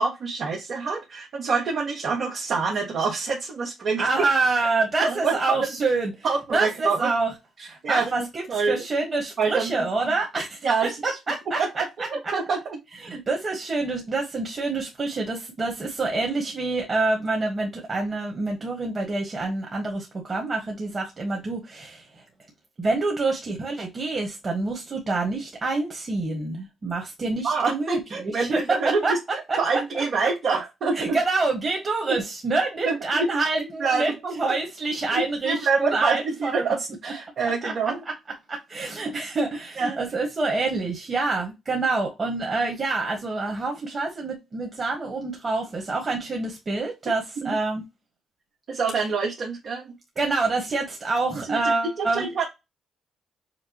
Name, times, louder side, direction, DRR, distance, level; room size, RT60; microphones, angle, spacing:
voice 1, 0.0-4.3 5.0-5.7 6.2-7.1 7.6-8.8 9.4-9.7 10.6-10.9 11.6-12.8 27.4-31.2 32.8-33.3 33.6-34.5 35.1-38.0 39.8-40.0 47.4-47.5 48.7-49.9 51.5-52.4, right 4 dB, 65° right, 1.3 m, -26 dB
voice 2, 4.0-6.2 6.5-7.3 7.7-11.6 12.0-12.1 13.0-22.0 22.8-29.1 29.5-30.0 30.9-36.5 37.6-37.7 38.0-38.1 38.5-47.8 50.1-52.3, right 3 dB, 40° right, 1.6 m, -27 dB
5.9 x 2.2 x 2.9 m
supercardioid pair, 60°, 0 cm